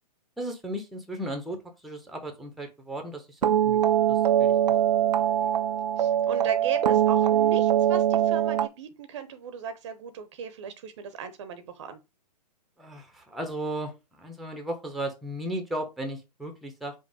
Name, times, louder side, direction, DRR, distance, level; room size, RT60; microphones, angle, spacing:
voice 1, 0.4-4.5 5.4-5.5 12.8-16.9, right 1 dB, ahead, 0.7 m, -36 dB
sound 1, 3.4-8.7, right 10 dB, 75° right, 0.4 m, -22 dB
voice 2, 6.0-12.0, right 7 dB, 45° right, 0.7 m, -36 dB
5.2 x 2.1 x 4.8 m
figure-of-eight pair, 125°, 21 cm